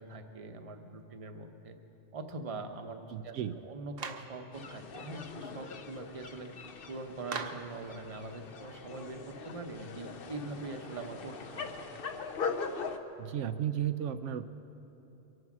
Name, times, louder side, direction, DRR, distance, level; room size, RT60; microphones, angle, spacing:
voice 1, 0.0-1.8 2.1-3.4 3.7-6.5 6.9-11.8, right 3 dB, 30° right, 6 dB, 0.9 m, -43 dB
voice 2, 3.1-3.6 13.2-14.5, right 10 dB, 85° right, 10 dB, 0.9 m, -34 dB
Clapping, 4.0-4.3 7.3-7.7, right 5 dB, 55° right, 1.0 m, -38 dB
sound 1, 4.5-13.0, left 5 dB, 55° left, 0.9 m, -41 dB
23.0 x 9.6 x 6.1 m, 3.0 s
omnidirectional pair, 1.2 m